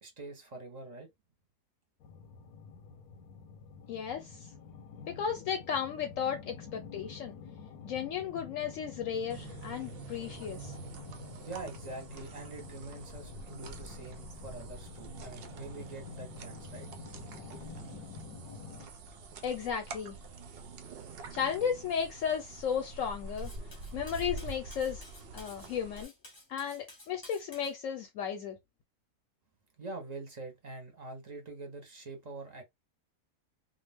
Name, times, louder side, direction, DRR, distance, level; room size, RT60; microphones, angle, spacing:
voice 1, 0.0-1.1 11.4-16.9 29.8-32.6, right 2 dB, 35° right, 0.8 m, -44 dB
sound 1, 2.0-18.9, left 5 dB, 85° left, 1.1 m, -48 dB
voice 2, 3.9-4.5 5.1-7.4 7.8-10.7 19.4-20.2 21.3-23.5 23.9-25.0 25.3-26.1 26.5-28.6, left 7 dB, 70° left, 0.9 m, -34 dB
sound 2, 9.3-26.0, right 3 dB, 65° right, 0.5 m, -46 dB
Cutlery silverware, 23.4-27.7, left 1 dB, 20° left, 0.7 m, -53 dB
2.4 x 2.2 x 3.4 m
omnidirectional pair, 1.5 m